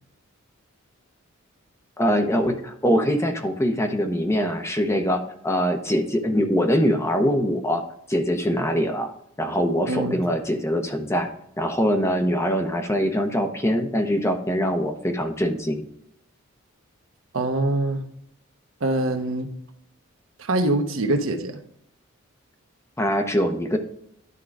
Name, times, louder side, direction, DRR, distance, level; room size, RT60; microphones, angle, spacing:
voice 1, 2.0-7.8 8.1-11.3 11.6-15.8 23.0-23.8, equal, 15° left, 5 dB, 0.8 m, -23 dB
voice 2, 9.9-10.2 17.3-18.0 18.8-19.5 20.4-21.6, right 2 dB, 70° right, 5 dB, 1.1 m, -24 dB
11.0 x 3.8 x 4.7 m, 0.71 s
head